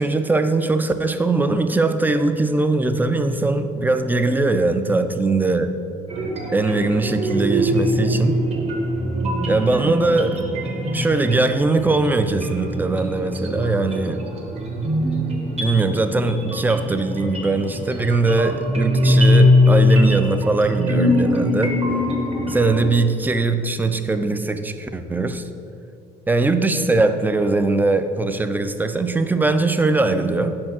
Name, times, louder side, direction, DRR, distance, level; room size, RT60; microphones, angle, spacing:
voice 1, 0.0-5.7 6.5-8.4 9.5-10.4 10.9-14.2 15.6-21.8 22.5-25.5 26.3-30.6, right 3 dB, 10° right, 9 dB, 0.3 m, -21 dB
sound 1, 6.1-22.9, left 1 dB, 35° right, 1.2 m, -22 dB
5.4 x 4.4 x 6.0 m, 2.5 s
cardioid pair, 110°, 17 cm